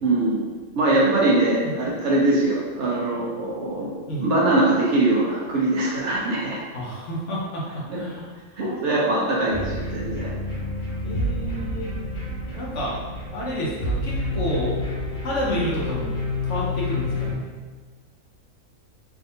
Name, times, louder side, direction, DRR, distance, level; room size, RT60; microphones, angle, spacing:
voice 1, 0.0-3.9 4.2-6.6 7.9-8.0 8.6-10.3, right 2 dB, 60° right, -5 dB, 0.9 m, -22 dB
voice 2, 6.7-9.5 11.0-11.9 12.5-13.0 13.3-14.7 15.2-16.2 16.4-17.4, equal, 60° left, -5 dB, 0.9 m, -30 dB
sound 1, 9.5-17.3, left 1 dB, 80° left, 1.5 m, -29 dB
3.5 x 2.5 x 2.7 m, 1.4 s
omnidirectional pair, 1.5 m